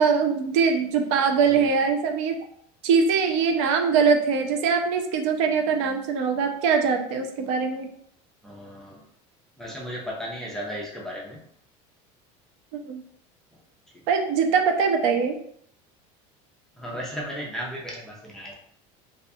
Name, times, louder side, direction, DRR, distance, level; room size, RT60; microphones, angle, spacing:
voice 1, 0.0-2.4 2.8-7.9 12.7-13.0 14.1-15.4, right 5 dB, 80° right, 4 dB, 0.4 m, -22 dB
voice 2, 8.4-9.0 9.6-11.4 13.9-14.0 16.8-18.5, equal, 5° left, -4 dB, 0.3 m, -35 dB
2.3 x 2.2 x 2.6 m, 0.67 s
cardioid pair, 180°, 15 cm